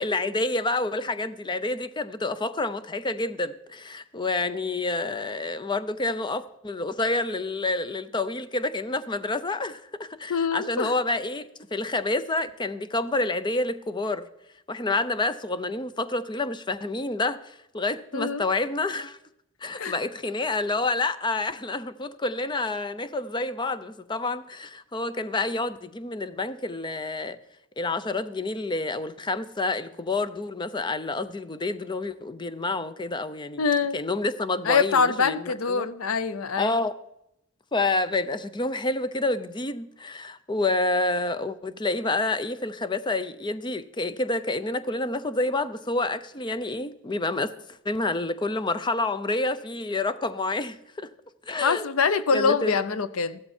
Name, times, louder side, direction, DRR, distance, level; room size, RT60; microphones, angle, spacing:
voice 1, 0.0-14.3 14.7-19.2 19.6-27.4 27.8-33.6 33.9-35.9 36.6-37.0 37.7-47.5 47.8-51.1 51.5-51.8 52.3-52.8, left 2 dB, 20° left, 0.6 m, -28 dB
voice 2, 10.3-10.9 18.1-18.5 19.8-20.0 33.6-34.0 34.6-36.7 51.6-53.4, left 5 dB, 90° left, 0.7 m, -24 dB
14.5 x 12.5 x 4.4 m
head